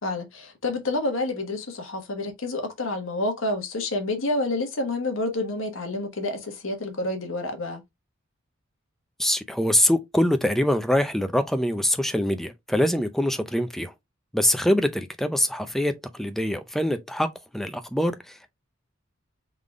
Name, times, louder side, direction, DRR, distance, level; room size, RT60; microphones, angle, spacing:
voice 1, 0.0-7.8, left 2 dB, 80° left, 1.3 m, -28 dB
voice 2, 9.2-13.9 14.3-17.3 17.5-18.5, left 1 dB, ahead, 0.5 m, -24 dB
3.8 x 3.5 x 3.6 m
head